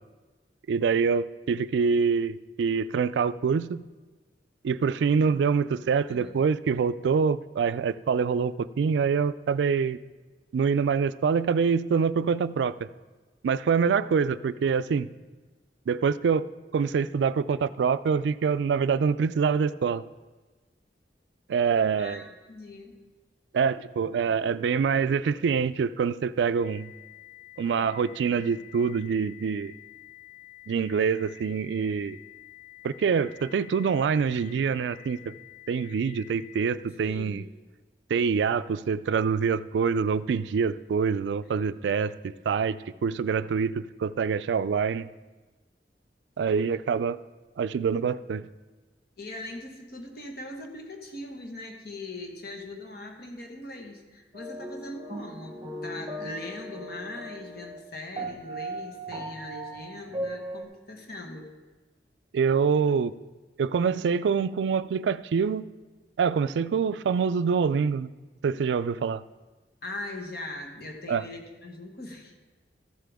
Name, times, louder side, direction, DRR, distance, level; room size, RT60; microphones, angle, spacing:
voice 1, 0.7-3.8 4.6-10.0 10.5-12.9 13.4-15.1 15.9-16.5 16.7-20.0 21.5-22.3 23.5-26.9 27.6-29.7 30.7-32.2 32.8-35.3 35.7-37.4 38.1-45.1 46.4-47.2 47.6-48.5 62.3-63.1 63.6-65.7 66.2-68.1 68.4-69.2 71.1-71.2, right 6 dB, 70° right, 16 dB, 0.3 m, -25 dB
voice 2, 22.0-23.0 37.0-37.5 49.2-61.5 69.8-72.3, left 2 dB, 60° left, 2 dB, 1.4 m, -40 dB
sound 1, 26.6-36.6, left 17 dB, 25° left, 1.3 m, -49 dB
sound 2, 54.3-57.8 58.2-60.6, right 1 dB, 25° right, 0.9 m, -37 dB
14.0 x 7.5 x 3.5 m, 1.2 s
head